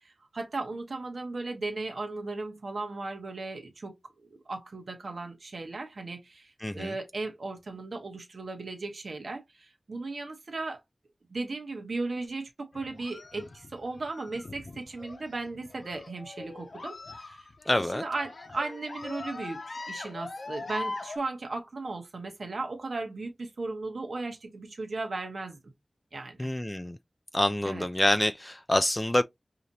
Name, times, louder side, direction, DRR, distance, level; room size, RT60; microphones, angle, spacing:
voice 1, 0.0-10.8 11.3-25.7 26.1-26.5 27.6-27.9, right 3 dB, 80° right, 1.0 m, -36 dB
voice 2, 6.6-6.9 17.7-18.0 26.4-27.0 27.3-29.2, left 1 dB, 20° left, 0.3 m, -26 dB
sound 1, 12.7-21.2, left 2 dB, 75° left, 0.7 m, -42 dB
5.0 x 2.9 x 2.7 m
wide cardioid pair, 55°, 0 cm